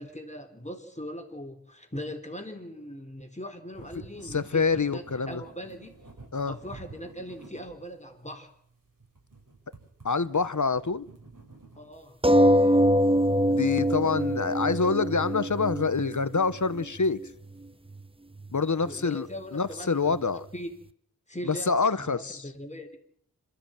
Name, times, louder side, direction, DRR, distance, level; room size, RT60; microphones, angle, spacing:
voice 1, 0.0-5.9 6.5-8.5 11.8-12.2 18.8-20.7 21.3-23.0, equal, 20° left, 3.8 m, -40 dB
sound 1, 3.7-18.0, right 3 dB, 65° right, 7.7 m, -52 dB
voice 2, 4.2-5.4 6.3-6.5 10.0-11.0 13.5-17.2 18.5-20.4 21.4-22.4, left 4 dB, 55° left, 1.2 m, -26 dB
sound 2, 12.2-17.2 18.0-18.1 18.4-18.5, equal, 15° right, 1.0 m, -24 dB
26.5 x 14.0 x 9.0 m
wide cardioid pair, 55°, 35 cm